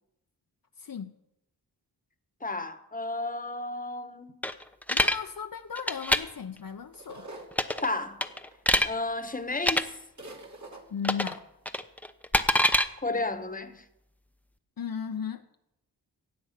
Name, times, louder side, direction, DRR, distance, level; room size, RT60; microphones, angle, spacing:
voice 1, 0.8-1.2 4.9-7.3 10.9-11.5 14.8-15.4, left 7 dB, 55° left, 0.8 m, -36 dB
voice 2, 2.4-4.3 7.8-8.2 8.8-9.9 13.0-13.8, left 2 dB, 20° left, 1.3 m, -32 dB
sound 1, 4.4-5.2 5.8-6.2 7.5-7.9 8.2-8.9 9.6-9.8 11.0-11.4 11.7-12.9, left 1 dB, 5° left, 0.9 m, -24 dB
sound 2, 6.9-8.8 9.5-9.6 9.8-9.9 10.2-10.8, right 2 dB, 45° right, 2.6 m, -46 dB
17.5 x 7.7 x 5.9 m
cardioid pair, 50°, 41 cm